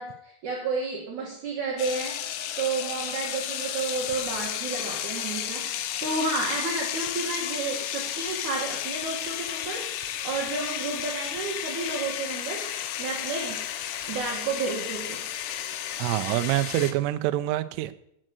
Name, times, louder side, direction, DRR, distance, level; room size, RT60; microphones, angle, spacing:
voice 1, 0.0-2.2 2.6-13.6 14.1-15.2, right 4 dB, 55° right, 2.3 m, -31 dB
sound 1, 1.8-16.9, left 11 dB, 85° left, 3.5 m, -33 dB
voice 2, 16.0-17.9, right 15 dB, 80° right, 3.0 m, -26 dB
8.8 x 7.8 x 7.6 m
omnidirectional pair, 5.8 m